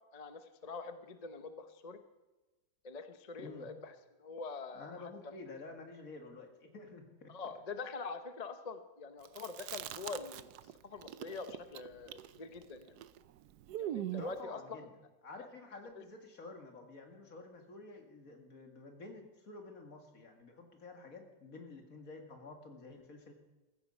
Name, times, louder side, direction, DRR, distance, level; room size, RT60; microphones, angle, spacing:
voice 1, 0.1-2.0 2.8-5.1 7.3-10.5 10.8-13.0 13.8-14.9 15.4-15.5 15.9-16.0, left 4 dB, 30° left, 9 dB, 0.8 m, -45 dB
voice 2, 4.7-7.3 14.2-23.3, left 3 dB, 55° left, 3 dB, 2.5 m, -50 dB
Chewing mastication, 9.2-10.7 11.0-14.4, right 12 dB, 80° right, 1.2 m, -42 dB
15.0 x 14.5 x 5.4 m, 1.1 s
omnidirectional pair, 1.7 m